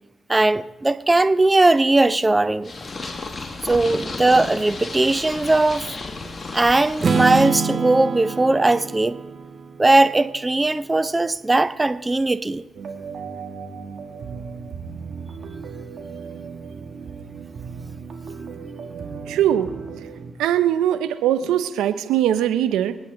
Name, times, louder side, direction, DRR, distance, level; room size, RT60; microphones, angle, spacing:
voice 1, 0.3-2.7 3.6-5.9 6.5-9.2 9.8-12.6, right 2 dB, 20° right, 14 dB, 0.7 m, -19 dB
Purr, 2.6-7.5, left 3 dB, 35° left, 1.8 m, -33 dB
Strum, 7.0-10.9, right 5 dB, 45° right, 1.7 m, -26 dB
sound 1, 12.7-20.3, right 5 dB, 65° right, 2.3 m, -36 dB
voice 2, 19.3-19.7 20.4-23.0, right 11 dB, 85° right, 12 dB, 0.7 m, -21 dB
27.5 x 9.4 x 3.8 m, 1.1 s
supercardioid pair, 55°, 0 cm